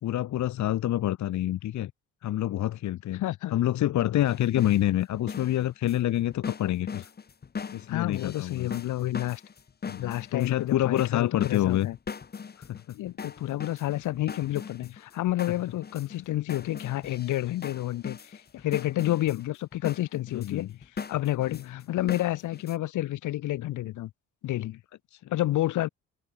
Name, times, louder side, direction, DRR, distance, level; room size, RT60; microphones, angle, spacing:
voice 1, 0.0-1.9 2.2-3.2 3.5-7.1 7.7-8.7 9.9-11.9 12.7-13.0 20.3-20.7 25.1-25.3, left 13 dB, 70° left, 1.1 m, -27 dB
voice 2, 3.1-3.6 7.9-9.4 10.0-12.0 12.9-20.7 21.1-24.1 24.4-24.8 25.3-25.9, left 15 dB, 85° left, 1.9 m, -30 dB
sound 1, 4.3-4.8 5.1-22.8, left 6 dB, 30° left, 1.3 m, -40 dB
cardioid pair, 90°, 30 cm